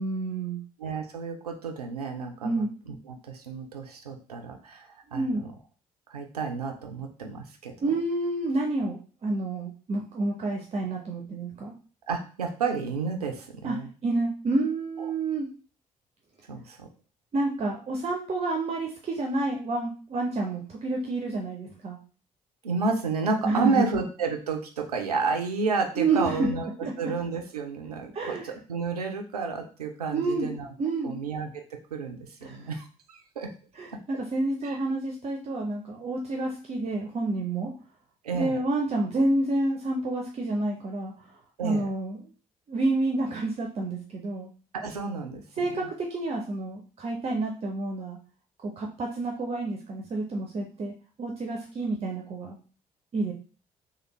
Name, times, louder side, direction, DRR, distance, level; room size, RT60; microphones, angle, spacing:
voice 1, 0.0-0.6 2.4-2.7 5.1-5.4 7.8-11.7 13.6-13.8 14.0-15.5 17.3-22.0 23.4-24.0 26.0-26.5 26.8-26.9 28.1-28.5 30.1-30.5 30.8-31.2 32.4-32.7 33.7-37.7 38.3-41.3 41.6-42.2 42.7-44.5 45.6-48.2 48.6-52.6 53.1-53.3, right 2 dB, 35° right, 1 dB, 0.6 m, -29 dB
voice 2, 0.8-2.6 3.1-5.5 6.1-7.7 12.1-13.9 15.0-15.1 16.5-16.9 22.6-30.7 31.0-33.5 34.6-34.8 38.2-38.6 41.6-41.9 44.7-45.4, right 4 dB, 85° right, 4 dB, 0.4 m, -31 dB
3.2 x 2.2 x 3.0 m, 0.38 s
figure-of-eight pair, 45°, 19 cm